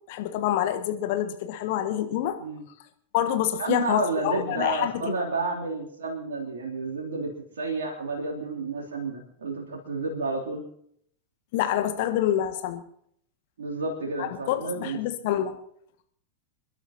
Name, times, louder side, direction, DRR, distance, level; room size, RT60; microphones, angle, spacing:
voice 1, 0.1-2.4 3.1-5.2 11.5-12.8 14.2-15.6, left 11 dB, 50° left, 7 dB, 1.3 m, -27 dB
voice 2, 3.6-10.7 13.6-15.0, right 3 dB, 65° right, -1 dB, 3.1 m, -31 dB
28.0 x 11.5 x 2.9 m, 0.67 s
figure-of-eight pair, 90°, 0 cm